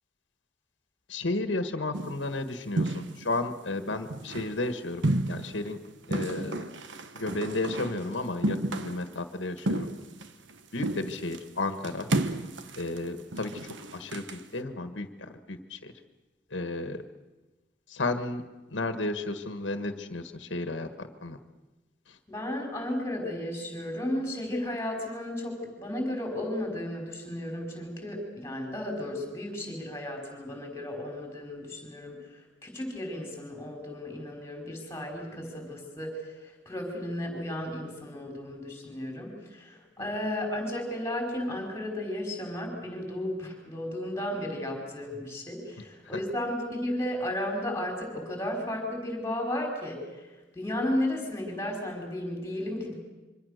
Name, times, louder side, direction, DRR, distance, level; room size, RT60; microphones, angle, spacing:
voice 1, 1.1-5.8 6.1-6.7 7.1-9.9 10.7-12.1 12.7-13.5 13.9-15.9 16.5-17.0 17.9-18.4 18.7-21.4 46.1-46.2, left 2 dB, 75° left, 8 dB, 1.6 m, -33 dB
sound 1, 1.9-2.3 2.8-3.4 3.9-4.6 5.0-5.7 6.1-8.1 8.4-9.1 9.6-10.5 10.8-11.4 11.8-14.4, right 1 dB, 75° right, 1.3 m, -32 dB
voice 2, 22.3-52.9, left 1 dB, 15° left, 2 dB, 4.9 m, -34 dB
26.5 x 24.0 x 6.7 m, 1.1 s
head